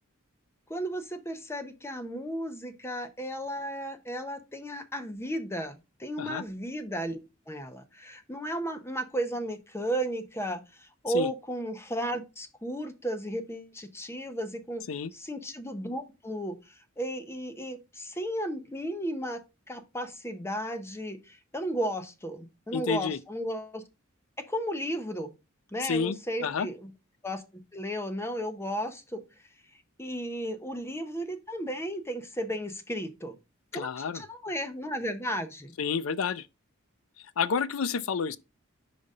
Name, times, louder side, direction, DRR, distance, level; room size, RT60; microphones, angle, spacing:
voice 1, 0.7-14.8 15.1-19.4 19.7-23.8 24.5-25.3 25.7-26.9 27.2-27.4 27.7-29.2 30.0-33.3 33.7-35.7, equal, 10° left, 0.7 m, -34 dB
voice 2, 22.7-23.2 25.8-26.7 33.7-34.2 35.8-36.5 37.4-38.4, left 6 dB, 75° left, 0.4 m, -30 dB
5.1 x 3.9 x 5.3 m
head